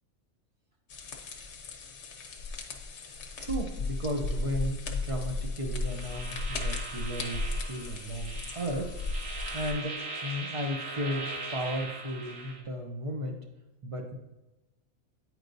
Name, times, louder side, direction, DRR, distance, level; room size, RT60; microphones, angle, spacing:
sound 1, 0.9-9.7, left 3 dB, 60° left, 1.0 m, -35 dB
voice 1, 2.5-9.0 9.5-13.5 13.8-14.1, equal, 40° right, 2 dB, 0.5 m, -35 dB
sound 2, 5.8-12.6, right 3 dB, 70° right, 1.2 m, -40 dB
9.2 x 4.5 x 2.6 m, 1.0 s
omnidirectional pair, 1.5 m